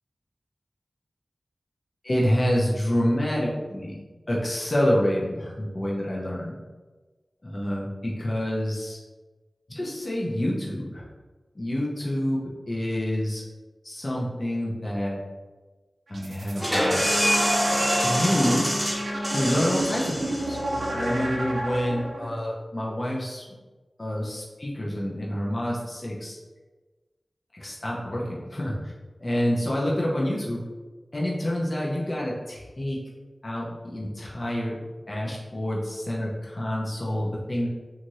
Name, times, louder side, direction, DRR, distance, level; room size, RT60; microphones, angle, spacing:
voice 1, 2.0-4.0 4.3-6.6 7.4-9.0 9.7-11.0 11.5-13.4 13.8-15.2 16.1-17.1 18.0-18.8 19.3-20.6 20.9-23.4 24.0-26.4 27.5-28.8 29.2-30.6 31.1-33.0 33.4-37.7, equal, 40° left, -5 dB, 0.6 m, -27 dB
sound 1, 16.1-22.3, right 2 dB, 85° right, 0.5 m, -32 dB
sound 2, 16.6-22.0, equal, 10° right, 1.0 m, -26 dB
3.0 x 2.5 x 2.6 m, 1.3 s
wide cardioid pair, 55°, 0 cm